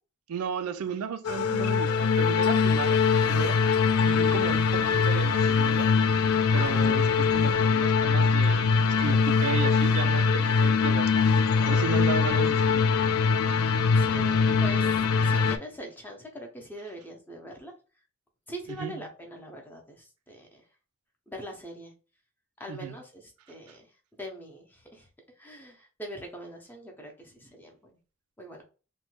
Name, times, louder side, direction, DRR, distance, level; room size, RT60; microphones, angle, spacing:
voice 1, 0.3-3.6 4.0-5.9 6.1-6.2 6.5-11.2 11.7-12.9 18.7-19.1 22.7-22.9 23.7-23.8, right 5 dB, 85° right, 0.4 m, -34 dB
sound 1, 1.2-15.6, left 5 dB, 75° left, 0.4 m, -23 dB
voice 2, 6.5-6.9 13.7-17.7 18.5-20.6 21.3-21.9 22.6-23.9 24.1-25.1 25.4-27.9 28.4-28.6, right 1 dB, 10° left, 0.6 m, -42 dB
3.1 x 2.2 x 3.1 m
head